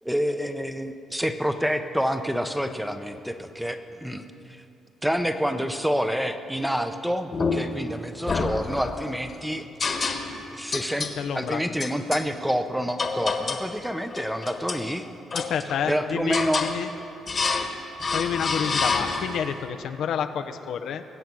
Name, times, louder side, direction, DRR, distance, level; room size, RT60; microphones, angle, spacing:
voice 1, 0.0-4.6 5.0-9.7 10.5-11.1 11.3-15.1 15.9-16.6, equal, 5° right, 8 dB, 0.9 m, -28 dB
Heater Metal Sounds, 7.3-7.9 8.3-9.1 9.8-10.4 10.7-11.2 11.8-12.3 13.0-13.7 14.1-14.9 15.3-15.9 16.3-16.8 17.3-17.7 18.0-19.5, left 4 dB, 40° left, 1.5 m, -28 dB
voice 2, 11.2-11.6 15.3-16.9 18.1-21.0, left 8 dB, 75° left, 8 dB, 0.7 m, -29 dB
21.5 x 8.1 x 6.2 m, 2.7 s
cardioid pair, 90°, 0 cm